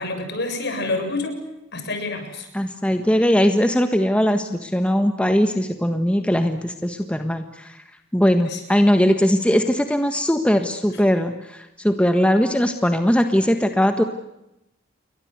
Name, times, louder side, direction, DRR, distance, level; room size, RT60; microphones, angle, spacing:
voice 1, 0.0-1.4 1.7-2.5 8.5-8.6, left 2 dB, 55° left, 7 dB, 7.2 m, -27 dB
voice 2, 2.5-7.8 8.1-14.0, equal, 5° left, 7 dB, 1.5 m, -20 dB
29.5 x 23.5 x 8.2 m, 0.88 s
head